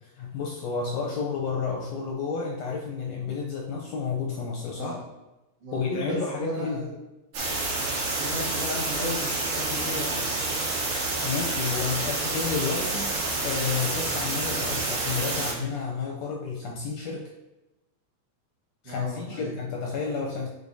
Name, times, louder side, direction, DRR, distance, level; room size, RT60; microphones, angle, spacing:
voice 1, 0.2-5.0 5.7-6.8 11.2-17.3 18.8-20.5, left 5 dB, 70° left, -1 dB, 1.7 m, -31 dB
voice 2, 5.6-6.9 8.1-10.3 18.8-19.5, equal, 50° right, -6 dB, 2.6 m, -35 dB
sound 1, 7.3-15.5, right 2 dB, 80° right, 3.3 m, -28 dB
9.5 x 4.8 x 2.7 m, 1.0 s
omnidirectional pair, 3.6 m